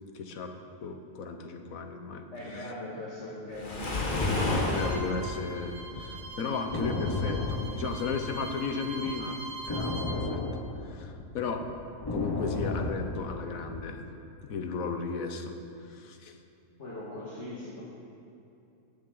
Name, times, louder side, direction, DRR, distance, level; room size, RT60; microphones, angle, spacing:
voice 1, 0.1-0.5 0.8-2.3 2.5-2.7 4.7-10.4 10.8-11.7 12.1-14.0 14.4-15.6 15.8-16.4, left 5 dB, 80° left, 6 dB, 1.3 m, -35 dB
voice 2, 2.3-4.1 16.8-17.8, left 1 dB, 55° left, -6 dB, 1.9 m, -40 dB
Waves surf, 3.5-5.0, left 2 dB, 40° left, 1.2 m, -30 dB
sound 1, 4.2-8.6 8.9-13.8, left 2 dB, 20° left, 0.7 m, -33 dB
Bowed string instrument, 4.7-10.2, right 2 dB, 80° right, 2.2 m, -42 dB
18.5 x 7.0 x 3.9 m, 2.7 s
omnidirectional pair, 1.4 m